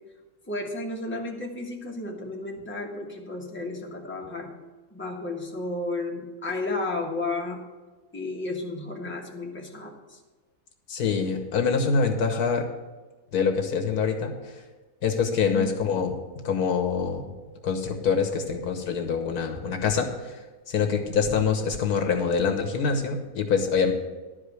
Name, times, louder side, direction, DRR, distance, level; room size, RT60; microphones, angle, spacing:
voice 1, 0.5-4.5 4.9-7.6 8.1-10.2 15.5-15.9, left 2 dB, 10° left, -1 dB, 1.3 m, -33 dB
voice 2, 10.9-12.6 13.3-14.6 15.0-16.2 16.4-17.3 17.6-20.4 20.7-23.9, left 5 dB, 80° left, 4 dB, 1.7 m, -25 dB
12.0 x 5.0 x 8.1 m, 1.3 s
omnidirectional pair, 1.6 m